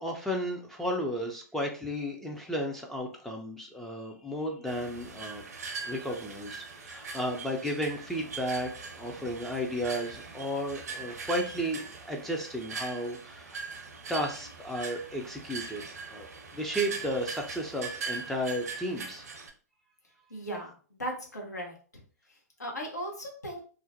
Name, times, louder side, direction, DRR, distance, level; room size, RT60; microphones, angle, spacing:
voice 1, 0.0-5.4 5.9-13.6 14.1-15.8 16.1-16.3 16.5-19.2, equal, 5° left, 0 dB, 0.3 m, -33 dB
sound 1, 4.7-19.5, right 4 dB, 70° right, 0.6 m, -41 dB
voice 2, 20.3-22.0 22.3-23.6, right 1 dB, 85° left, 0 dB, 0.7 m, -38 dB
2.4 x 2.0 x 2.6 m, 0.40 s
figure-of-eight pair, 110°, 9 cm